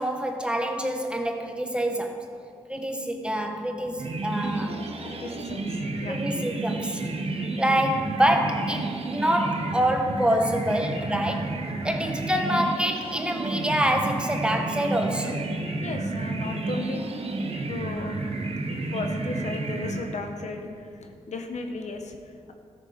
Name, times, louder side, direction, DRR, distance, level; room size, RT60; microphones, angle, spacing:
voice 1, 0.0-2.2 2.7-4.8 5.3-5.4 6.1-7.0 7.6-11.5 11.8-15.4, equal, 10° right, 4 dB, 1.4 m, -26 dB
sound 1, 4.0-20.6, right 2 dB, 55° right, 1.2 m, -31 dB
voice 2, 5.0-6.2 15.8-17.0 17.7-18.2 18.9-22.5, left 3 dB, 70° left, 4 dB, 1.1 m, -35 dB
13.5 x 7.3 x 5.2 m, 2.3 s
cardioid pair, 55°, 12 cm